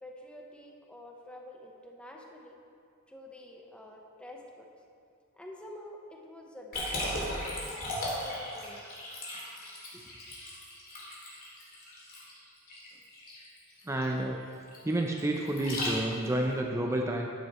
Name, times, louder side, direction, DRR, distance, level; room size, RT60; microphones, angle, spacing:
voice 1, 0.0-2.5 3.1-4.7 5.3-8.9 9.9-10.1, left 1 dB, 5° left, 0 dB, 0.9 m, -48 dB
Liquid, 6.7-16.4, left 1 dB, 40° left, 2.5 m, -37 dB
voice 2, 13.9-14.4 14.8-17.3, right 1 dB, 15° right, 1 dB, 0.5 m, -30 dB
12.0 x 9.5 x 3.0 m, 2.5 s
head